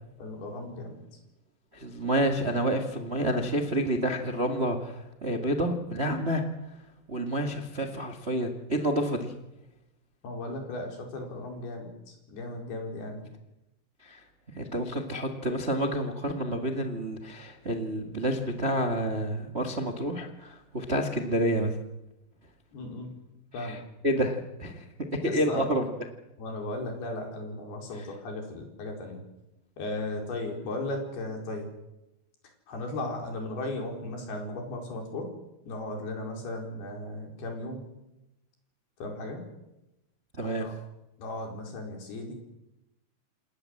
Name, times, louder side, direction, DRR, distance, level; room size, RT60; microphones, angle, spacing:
voice 1, 0.2-1.0 10.2-13.2 22.7-23.1 23.5-23.8 25.2-25.7 26.4-29.2 29.8-31.7 32.7-35.3 35.7-37.8 39.0-39.4 40.4-40.7 41.2-42.3, left 2 dB, 70° left, 3 dB, 6.4 m, -36 dB
voice 2, 1.7-6.4 7.1-9.3 14.0-21.7 23.5-24.8 25.1-25.9 40.3-40.7, right 1 dB, 40° right, 5 dB, 0.9 m, -29 dB
28.0 x 20.0 x 7.8 m, 0.94 s
omnidirectional pair, 4.8 m